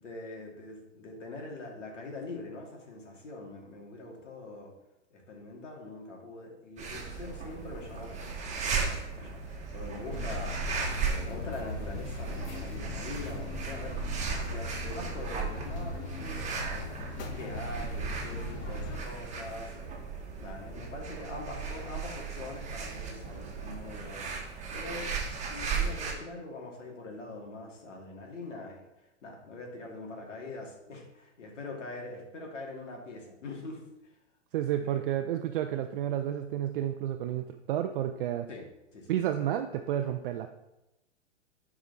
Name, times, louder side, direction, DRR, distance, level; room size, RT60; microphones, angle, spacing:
voice 1, 0.0-4.7 5.1-14.0 14.4-24.3 24.7-28.8 29.2-33.8 34.6-35.0 38.5-38.6 38.9-39.1, left 2 dB, 75° left, 0 dB, 2.5 m, -43 dB
sound 1, 6.8-26.1, right 5 dB, 20° right, 1.6 m, -36 dB
sound 2, 10.1-19.0, left 2 dB, 35° left, 1.5 m, -39 dB
voice 2, 34.5-38.5 39.1-40.5, right 11 dB, 45° right, 7 dB, 0.6 m, -31 dB
10.5 x 4.9 x 4.0 m, 0.94 s
hypercardioid pair, 120°, 37 cm